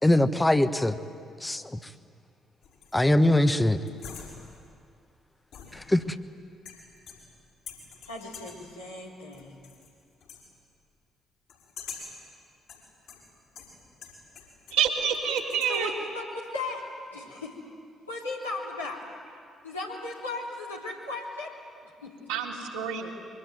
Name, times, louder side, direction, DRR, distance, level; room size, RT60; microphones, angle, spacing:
voice 1, 0.0-1.0 1.4-1.8 2.9-3.8 5.7-6.1, left 1 dB, 15° left, 10 dB, 1.4 m, -22 dB
sound 1, 2.6-3.1 3.9-4.7 5.5-6.2 6.7-7.4 7.7-8.7 9.3-9.9 10.2-10.5 11.5-12.2 12.7-14.9 15.1-15.8, left 6 dB, 65° left, 6.4 m, -46 dB
voice 2, 8.1-9.6 15.7-16.8 17.1-17.6 18.1-19.0 19.6-21.5 21.8-22.5, left 2 dB, 90° left, -5 dB, 3.6 m, -36 dB
voice 3, 14.7-15.9 22.3-23.1, right 7 dB, 75° right, -2 dB, 3.4 m, -27 dB
26.0 x 24.0 x 9.4 m, 2.3 s
figure-of-eight pair, 45°, 0 cm